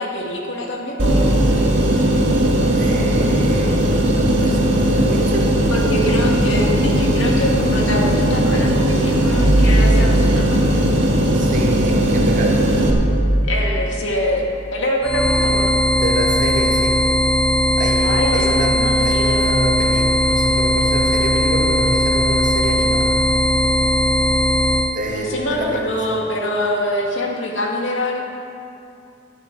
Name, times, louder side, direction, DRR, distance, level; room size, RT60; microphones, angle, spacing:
voice 1, 0.0-1.4 5.7-10.6 13.5-15.8 18.0-19.4 25.1-28.2, left 1 dB, 80° left, -1 dB, 2.1 m, -24 dB
sound 1, 1.0-12.9, right 1 dB, 80° right, 1.8 m, -17 dB
voice 2, 2.8-5.5 11.3-12.6 16.0-17.0 17.8-18.7 19.0-23.1 24.9-25.9, right 1 dB, 40° right, -1 dB, 2.0 m, -27 dB
sound 2, 15.0-25.0, equal, 5° left, 0.4 m, -18 dB
13.5 x 12.5 x 4.7 m, 2.7 s
head